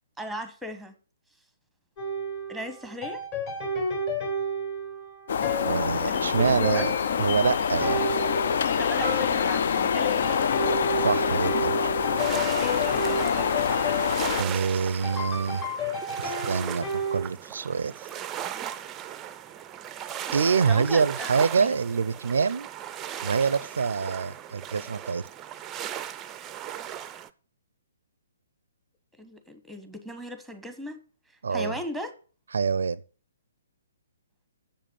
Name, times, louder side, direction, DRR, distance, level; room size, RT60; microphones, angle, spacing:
voice 1, 0.2-1.0 2.5-3.2 6.0-6.9 8.8-10.4 12.6-13.7 20.7-21.7 29.2-31.0 31.5-32.1, left 1 dB, ahead, 1.2 m, -37 dB
sound 1, 2.0-17.2, equal, 35° left, 4.2 m, -32 dB
sound 2, 5.3-14.4, left 7 dB, 55° left, 0.6 m, -26 dB
voice 2, 5.7-8.0 11.0-11.9 14.4-15.6 16.2-18.1 20.3-22.7 23.2-25.3 31.4-31.8 32.5-33.0, right 5 dB, 65° right, 0.5 m, -26 dB
sound 3, 12.2-27.3, right 10 dB, 20° right, 0.5 m, -37 dB
7.5 x 7.2 x 7.0 m
figure-of-eight pair, 130°, 0 cm